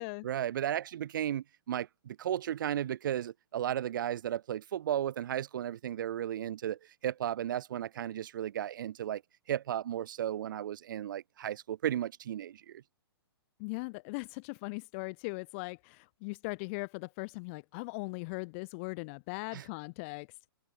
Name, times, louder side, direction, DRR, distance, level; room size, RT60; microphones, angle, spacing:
voice 1, 0.0-9.2 9.5-12.8 19.5-19.6, right 11 dB, 50° right, 1.4 m, -34 dB
voice 2, 13.6-20.3, left 30 dB, 30° left, 0.6 m, -39 dB
figure-of-eight pair, 120°, 13 cm